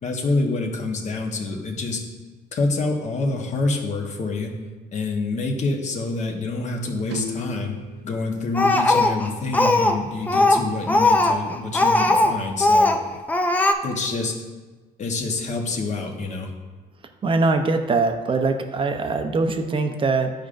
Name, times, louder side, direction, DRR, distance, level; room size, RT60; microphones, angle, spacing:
voice 1, 0.0-2.0 2.5-4.6 4.9-7.8 8.0-12.9 13.8-14.4 15.0-16.5, left 3 dB, 45° left, 2 dB, 1.1 m, -27 dB
sound 1, 7.1-7.9 9.6-9.7 9.9-10.0 10.5-10.6 11.0-11.1 11.9-12.7, right 1 dB, 80° right, 0.6 m, -34 dB
Speech, 8.5-10.0 10.3-12.3 12.6-13.0 13.3-13.7, left 2 dB, 10° left, 0.5 m, -18 dB
voice 2, 17.2-20.3, right 3 dB, 30° right, 6 dB, 0.7 m, -22 dB
10.5 x 5.0 x 2.5 m, 1.3 s
cardioid pair, 110°, 17 cm